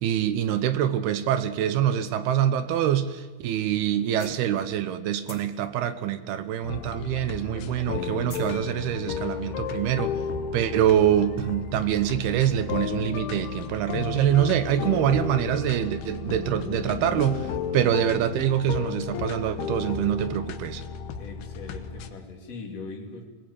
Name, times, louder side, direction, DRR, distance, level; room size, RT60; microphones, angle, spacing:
voice 1, 0.0-10.1 10.5-20.8, right 10 dB, 75° right, 2.7 m, -25 dB
sound 1, 4.2-4.9 5.2-7.1 7.4-8.6, left 3 dB, 20° left, 2.6 m, -46 dB
sound 2, 6.6-22.1, left 7 dB, 70° left, 2.9 m, -33 dB
voice 2, 21.2-23.2, left 3 dB, 40° left, 3.6 m, -40 dB
24.0 x 20.5 x 8.8 m
omnidirectional pair, 5.1 m